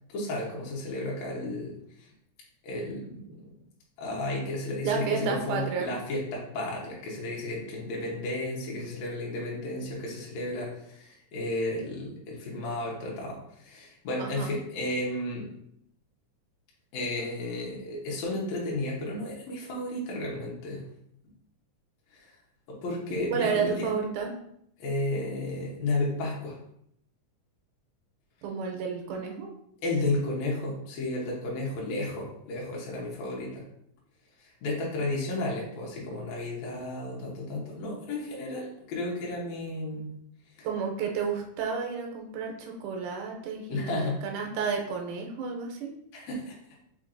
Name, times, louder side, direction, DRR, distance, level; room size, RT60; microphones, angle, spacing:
voice 1, 0.1-2.1 2.6-3.5 4.0-15.5 16.9-20.8 22.1-22.3 22.7-23.9 24.8-26.6 29.8-33.6 34.4-40.1 40.6-40.7 43.7-44.2 46.1-46.6, left 2 dB, 65° left, -3 dB, 2.1 m, -33 dB
voice 2, 4.8-5.9 14.2-14.5 23.3-24.3 28.4-29.5 40.6-45.9, right 6 dB, 80° right, 1 dB, 2.1 m, -31 dB
4.5 x 4.5 x 2.5 m, 0.73 s
omnidirectional pair, 3.7 m